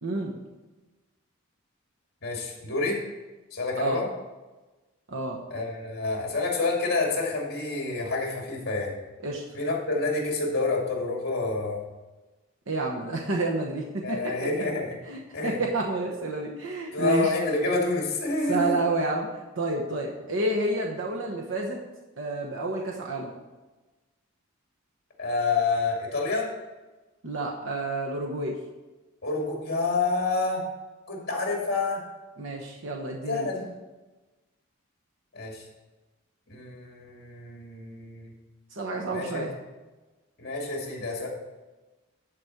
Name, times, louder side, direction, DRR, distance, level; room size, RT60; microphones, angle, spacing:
voice 1, 0.0-0.4 3.8-4.0 5.1-5.4 9.2-9.4 12.7-14.3 15.1-17.3 18.5-21.8 22.2-23.3 27.2-28.6 32.4-33.5 38.7-39.5, right 2 dB, 70° right, 0 dB, 1.0 m, -29 dB
voice 2, 2.2-3.0 3.5-4.1 5.5-9.0 9.5-11.8 14.0-15.0 15.3-15.6 16.9-18.8 25.2-26.5 29.2-30.6 31.1-32.0 33.3-33.7 35.3-35.6 36.5-38.3 39.1-39.5 40.4-41.3, left 3 dB, 50° left, -1 dB, 2.3 m, -28 dB
11.0 x 4.3 x 6.5 m, 1.2 s
head